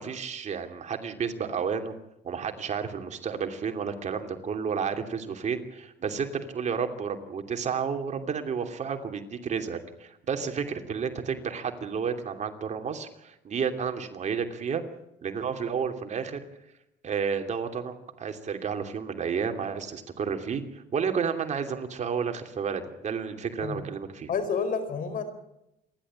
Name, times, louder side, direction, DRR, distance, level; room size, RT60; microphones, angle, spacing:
voice 1, 0.0-1.9 2.2-14.8 15.2-16.4 17.0-24.3, right 6 dB, 45° right, 5 dB, 2.8 m, -31 dB
voice 2, 24.3-25.2, left 5 dB, 55° left, 10 dB, 4.6 m, -29 dB
28.0 x 12.0 x 8.8 m, 0.85 s
cardioid pair, 110°, 17 cm